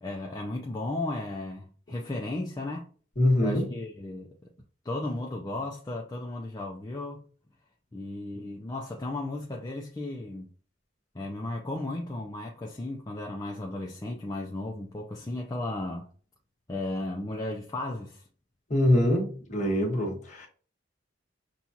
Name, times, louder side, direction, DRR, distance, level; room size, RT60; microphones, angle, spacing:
voice 1, 0.0-2.9 3.4-4.5 4.8-7.2 7.9-10.5 11.1-16.1 16.7-18.3, left 2 dB, 20° left, 0.5 m, -35 dB
voice 2, 3.2-3.7 18.7-20.5, left 1 dB, 40° left, 1.3 m, -24 dB
6.0 x 2.3 x 2.7 m
head